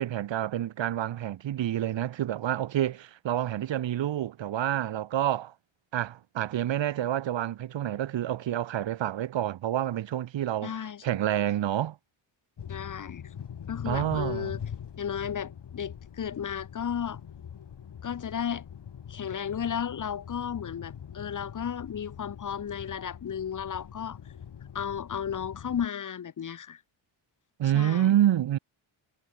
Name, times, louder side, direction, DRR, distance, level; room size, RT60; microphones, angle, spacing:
voice 1, 0.0-5.5 5.9-12.0 13.8-14.6 27.6-28.6, right 12 dB, 65° right, 1.1 m, -28 dB
voice 2, 10.6-11.0 12.7-13.2 13.7-14.6 15.0-17.2 18.0-18.6 19.1-24.2 24.7-26.8 27.7-28.1, left 8 dB, 40° left, 0.9 m, -34 dB
sound 1, 12.6-25.9, left 8 dB, 55° left, 3.5 m, -43 dB
cardioid pair, 105°, 49 cm